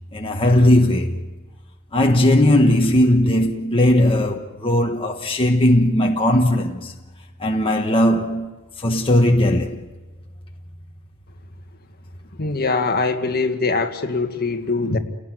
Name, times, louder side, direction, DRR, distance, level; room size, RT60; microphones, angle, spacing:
voice 1, 0.1-1.2 1.9-6.9 7.4-9.8, left 1 dB, 25° left, 1.4 m, -18 dB
voice 2, 12.4-15.0, left 3 dB, 45° left, 1.8 m, -22 dB
29.5 x 18.0 x 9.4 m
head